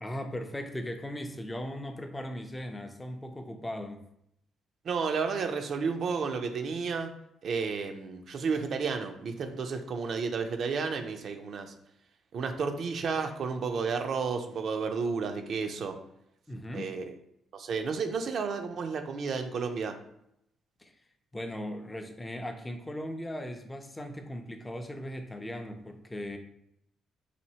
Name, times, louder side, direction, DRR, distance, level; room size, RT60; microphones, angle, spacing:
voice 1, 0.0-4.0 16.5-16.9 20.8-20.9 21.3-26.4, left 1 dB, 15° left, 6 dB, 0.5 m, -38 dB
voice 2, 4.8-7.1 7.4-11.7 12.3-16.0 16.5-17.1 17.5-20.0, right 5 dB, 60° right, 6 dB, 0.5 m, -32 dB
4.2 x 2.6 x 2.8 m, 0.76 s
cardioid pair, 90°, 0 cm